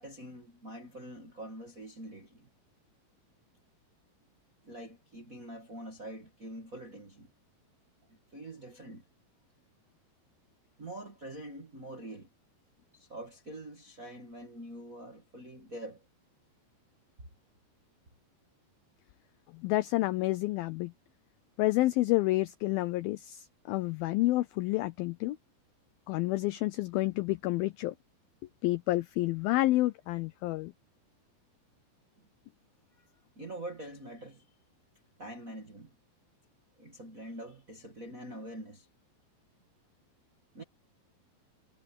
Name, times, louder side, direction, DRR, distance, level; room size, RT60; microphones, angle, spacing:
voice 1, 0.0-2.5 4.6-7.3 8.1-9.0 10.8-12.3 12.9-16.0 33.3-34.4 35.2-35.9 36.8-38.9 40.5-40.6, right 1 dB, 35° right, 1.3 m, -45 dB
voice 2, 19.5-20.9 21.6-25.4 26.1-28.0 28.6-30.7, left 18 dB, 90° left, 2.1 m, -29 dB
omnidirectional pair, 5.0 m